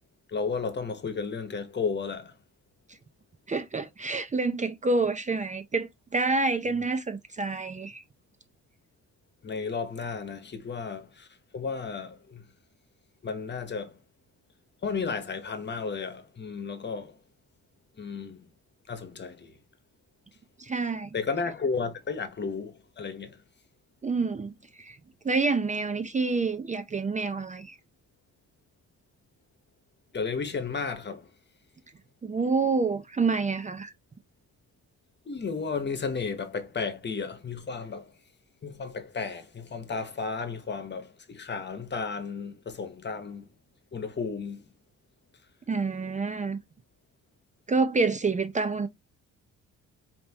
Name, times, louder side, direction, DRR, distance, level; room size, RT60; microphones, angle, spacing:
voice 1, 0.3-2.4 6.7-6.9 9.4-11.3 11.5-12.5 13.2-14.0 14.8-17.2 18.0-18.5 18.9-19.6 21.1-23.4 30.1-31.3 35.3-38.1 38.6-43.5 43.9-44.6, left 5 dB, 35° left, 1.2 m, -33 dB
voice 2, 3.5-8.0 20.6-21.1 24.0-25.0 25.2-27.7 32.2-33.9 45.7-46.6 47.7-48.9, right 4 dB, 25° right, 0.6 m, -28 dB
5.2 x 2.9 x 2.9 m
cardioid pair, 90°, 30 cm